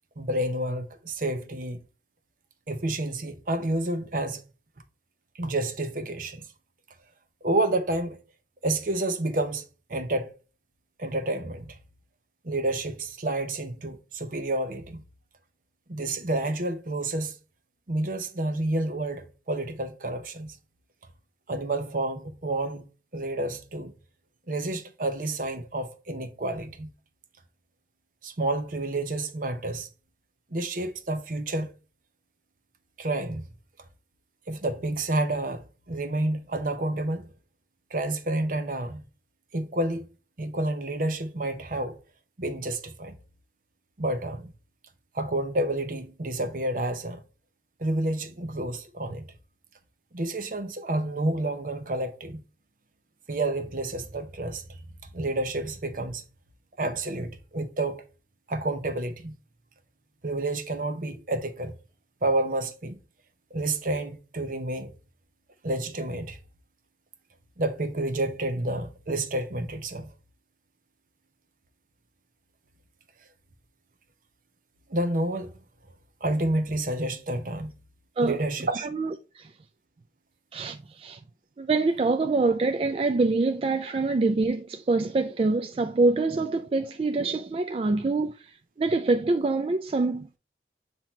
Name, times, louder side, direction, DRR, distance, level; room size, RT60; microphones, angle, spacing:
voice 1, 0.2-1.8 2.7-4.4 5.3-6.4 7.4-8.2 8.6-9.6 9.9-10.3 11.0-11.8 12.4-15.0 15.9-17.4 17.9-20.6 21.5-22.8 23.1-23.9 24.5-26.9 28.2-29.9 30.5-31.7 33.0-33.5 34.5-37.3 37.9-39.0 39.5-40.1 40.4-42.0 42.4-43.2 44.0-44.5 45.1-47.2 47.8-49.3 50.1-52.4 53.3-54.8 55.1-56.2 56.8-58.0 58.5-59.4 60.2-61.7 62.2-63.0 63.5-64.9 65.6-66.4 67.6-70.1 74.9-75.6 76.2-77.7 78.2-78.9, right 2 dB, 50° right, 0.8 m, -29 dB
voice 2, 78.9-79.5 80.5-81.2 81.6-90.4, right 3 dB, 30° right, 0.3 m, -25 dB
7.5 x 2.9 x 4.4 m
head